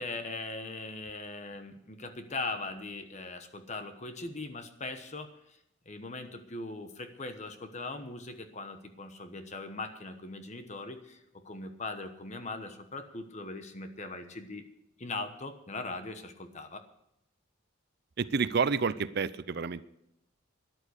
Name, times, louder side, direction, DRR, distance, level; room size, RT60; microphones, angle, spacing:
voice 1, 0.0-5.6 5.9-14.6 15.0-16.8, left 3 dB, 35° left, 8 dB, 1.1 m, -40 dB
voice 2, 18.2-19.8, right 5 dB, 50° right, 16 dB, 0.5 m, -29 dB
13.0 x 11.0 x 6.5 m, 0.81 s
head